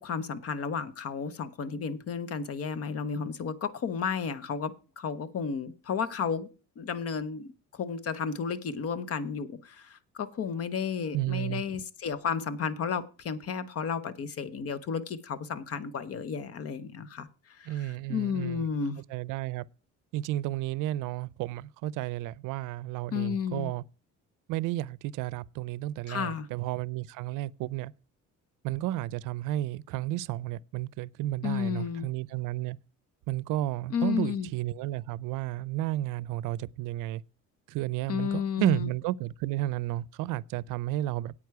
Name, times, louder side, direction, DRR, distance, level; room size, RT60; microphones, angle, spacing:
voice 1, 0.0-6.5 6.8-19.0 23.1-23.7 26.1-26.5 31.4-32.1 33.9-34.5 38.1-38.9, left 6 dB, 50° left, 1.0 m, -32 dB
voice 2, 11.1-11.6 17.6-18.7 19.1-19.6 20.1-23.8 24.5-27.9 28.6-32.8 33.3-37.2 37.7-41.3, right 15 dB, 85° right, 0.5 m, -32 dB
9.4 x 8.7 x 4.7 m
cardioid pair, 120°, 31 cm